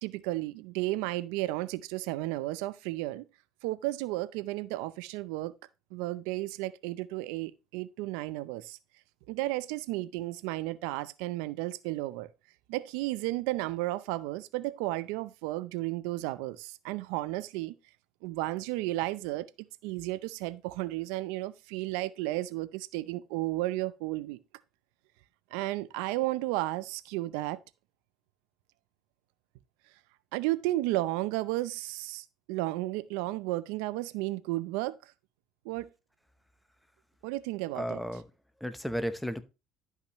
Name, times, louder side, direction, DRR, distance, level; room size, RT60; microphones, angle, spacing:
voice 1, 0.0-3.3 3.6-5.5 5.9-8.8 9.3-12.3 12.7-17.7 18.2-19.5 19.8-24.4 25.5-27.6 30.3-35.1 35.6-35.9 37.2-38.0, right 18 dB, 90° right, 0.5 m, -33 dB
voice 2, 37.8-38.2 38.6-39.4, equal, 5° left, 0.8 m, -33 dB
12.0 x 5.7 x 3.0 m
cardioid pair, 120°, 0 cm